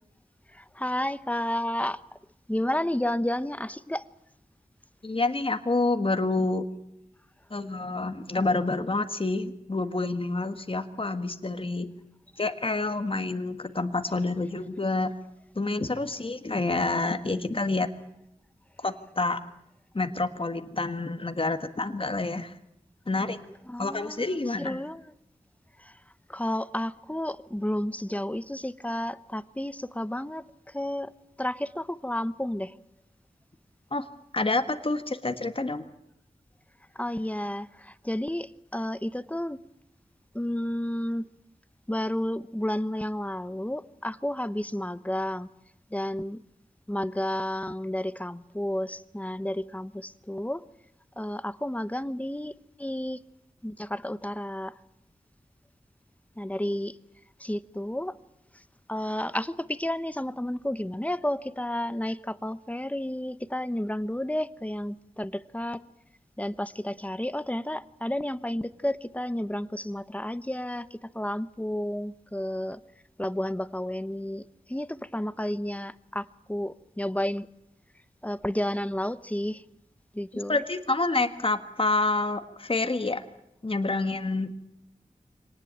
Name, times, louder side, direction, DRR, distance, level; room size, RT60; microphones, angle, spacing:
voice 1, 0.5-2.0 2.5-4.0 23.7-25.0 25.8-26.0 26.3-31.1 31.4-32.7 36.9-39.6 40.3-41.3 41.9-45.5 45.9-46.4 46.9-50.6 51.2-53.2 53.6-54.7 56.4-57.0 57.4-58.1 58.9-65.8 66.4-72.8 73.2-77.5 78.2-79.6 80.1-80.6, left 1 dB, 10° left, 14 dB, 1.0 m, -31 dB
voice 2, 5.0-6.7 7.5-11.9 12.4-15.1 15.5-17.9 18.8-19.4 19.9-22.5 23.1-23.4 23.8-24.8 33.9-34.0 34.3-35.9 80.5-83.2 83.6-84.5, left 3 dB, 40° left, 8 dB, 1.6 m, -28 dB
25.0 x 19.0 x 8.9 m, 0.82 s
wide cardioid pair, 60°, 14 cm